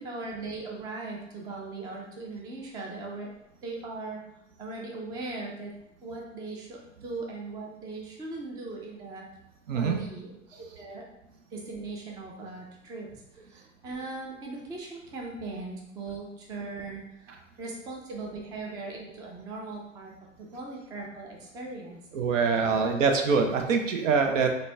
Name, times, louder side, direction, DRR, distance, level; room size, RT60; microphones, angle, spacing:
voice 1, 0.0-3.3 3.6-4.2 4.6-5.7 6.0-9.3 9.7-10.3 10.6-11.0 11.5-13.1 13.3-17.3 17.6-22.0 22.7-23.0, right 3 dB, 10° right, -1 dB, 0.3 m, -39 dB
voice 2, 9.7-10.0 22.1-24.5, right 5 dB, 75° right, 4 dB, 0.7 m, -24 dB
4.0 x 2.1 x 3.3 m, 0.83 s
hypercardioid pair, 105°, 39 cm